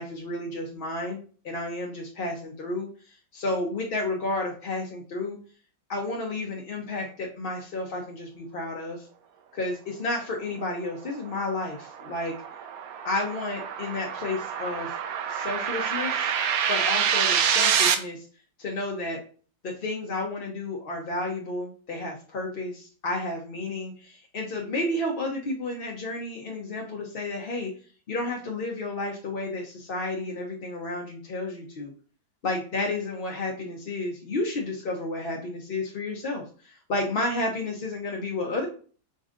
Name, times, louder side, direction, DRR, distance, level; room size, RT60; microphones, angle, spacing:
voice 1, 0.0-5.4 5.9-9.1 9.5-12.4 13.0-15.0 15.2-16.3 16.7-18.3 18.6-19.2 19.6-27.7 28.1-31.9 32.4-38.7, left 2 dB, 50° left, -1 dB, 0.6 m, -31 dB
sound 1, 11.1-17.9, right 8 dB, 70° right, 0.9 m, -27 dB
5.2 x 3.9 x 2.5 m, 0.41 s
omnidirectional pair, 1.8 m